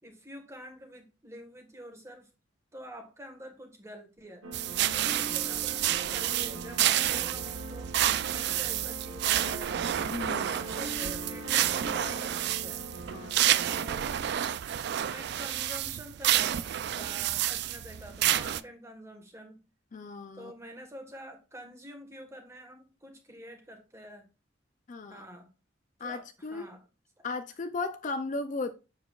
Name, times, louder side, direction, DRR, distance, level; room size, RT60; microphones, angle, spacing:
voice 1, 0.0-2.3 2.7-4.5 4.9-7.9 8.3-9.8 10.3-12.8 13.7-14.1 15.1-19.6 20.3-24.3 25.1-25.5 26.0-26.8, equal, 15° right, 1.3 m, -47 dB
sound 1, 4.4-13.9, right 2 dB, 80° right, 1.1 m, -42 dB
sound 2, 4.5-18.6, right 12 dB, 55° right, 0.3 m, -29 dB
voice 2, 10.1-10.5 13.1-13.5 19.9-20.5 24.9-25.3 26.0-26.7 27.2-28.7, left 3 dB, 40° left, 0.4 m, -36 dB
7.2 x 6.3 x 2.3 m
head